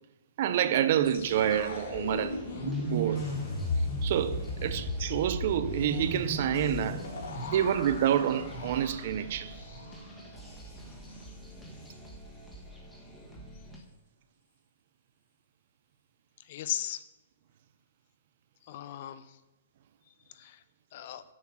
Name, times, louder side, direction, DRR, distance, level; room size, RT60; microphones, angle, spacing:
voice 1, 0.4-3.3 4.0-7.1 7.5-9.5, right 10 dB, 40° right, 0.5 m, -28 dB
sound 1, 1.0-10.1 10.4-10.5 10.9-11.3, left 1 dB, 60° left, 3.3 m, -35 dB
sound 2, 1.0-13.8, right 1 dB, 5° left, 1.3 m, -48 dB
voice 2, 16.4-17.0 18.6-19.4 20.3-20.6 20.9-21.2, left 11 dB, 40° left, 0.5 m, -37 dB
7.2 x 6.6 x 7.2 m
hypercardioid pair, 170°, 0 cm